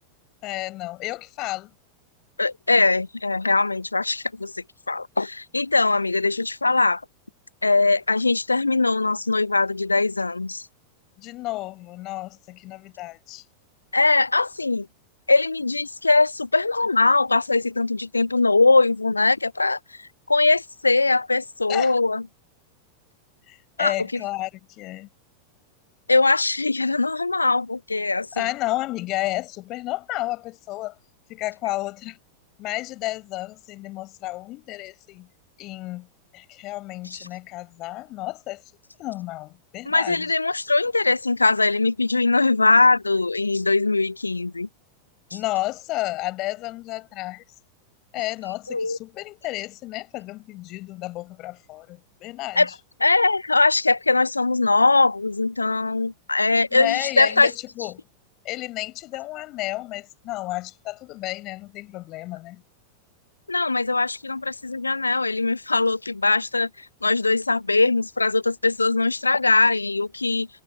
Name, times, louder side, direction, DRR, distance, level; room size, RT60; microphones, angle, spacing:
voice 1, 0.4-1.7 11.2-13.4 21.7-21.9 23.5-25.1 28.4-31.0 31.3-32.2 32.6-35.3 35.6-36.1 36.3-38.6 39.0-40.3 45.3-47.6 48.1-52.7 56.7-58.0 58.4-62.6, left 18 dB, 40° left, 5.9 m, -32 dB
voice 2, 2.4-7.0 7.6-10.7 13.9-14.9 15.3-22.2 23.8-23.9 26.1-28.4 37.1-37.3 39.9-44.7 48.7-49.0 52.6-52.7 53.0-57.5 63.5-70.5, left 3 dB, 80° left, 0.3 m, -21 dB
figure-of-eight pair, 90°, 0 cm